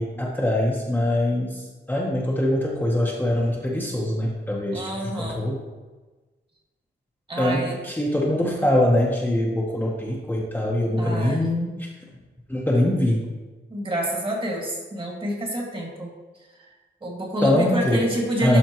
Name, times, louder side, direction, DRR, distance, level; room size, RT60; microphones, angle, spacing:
voice 1, 0.0-1.6 1.9-4.9 5.1-5.6 7.4-11.7 12.5-13.2 17.4-18.0 18.4-18.6, left 1 dB, 10° left, -4 dB, 1.0 m, -23 dB
voice 2, 4.7-5.5 7.3-7.7 11.0-11.5 13.7-16.8 17.0-18.6, equal, 25° right, -1 dB, 1.8 m, -28 dB
12.0 x 4.4 x 3.0 m, 1.3 s
wide cardioid pair, 110°, 20 cm